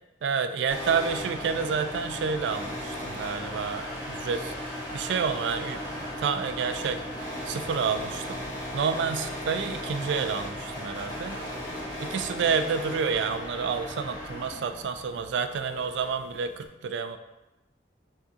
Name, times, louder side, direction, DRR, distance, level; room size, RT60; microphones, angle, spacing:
voice 1, 0.2-4.5 4.9-7.0 7.5-8.4 8.7-11.4 12.0-17.2, right 6 dB, 80° right, 9 dB, 0.3 m, -29 dB
sound 1, 0.7-16.7, equal, 25° left, 1.2 m, -36 dB
sound 2, 5.8-5.9 6.1-8.0 8.3-9.3 9.7-16.1, left 3 dB, 85° left, 0.4 m, -50 dB
4.8 x 3.4 x 2.7 m, 0.98 s
head